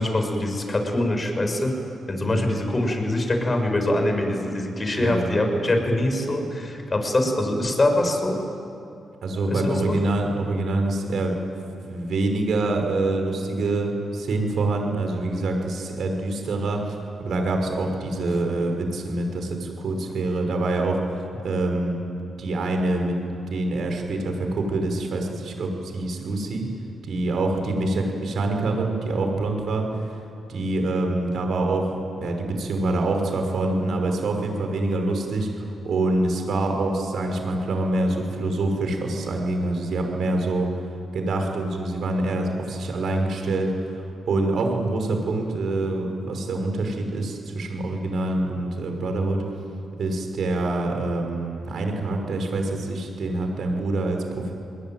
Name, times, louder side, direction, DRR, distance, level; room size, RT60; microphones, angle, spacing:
voice 1, 0.0-1.8 2.1-8.4 9.5-10.0, left 1 dB, 35° left, 5 dB, 6.5 m, -24 dB
voice 2, 2.3-2.6 4.9-5.4 9.2-11.5 11.8-21.0 21.4-22.0 22.4-23.2 23.5-26.6 27.0-30.1 30.5-40.7 41.1-49.4 50.0-54.5, right 2 dB, 65° right, 3 dB, 5.9 m, -25 dB
28.5 x 22.0 x 9.3 m, 2.6 s
hypercardioid pair, 40°, 0 cm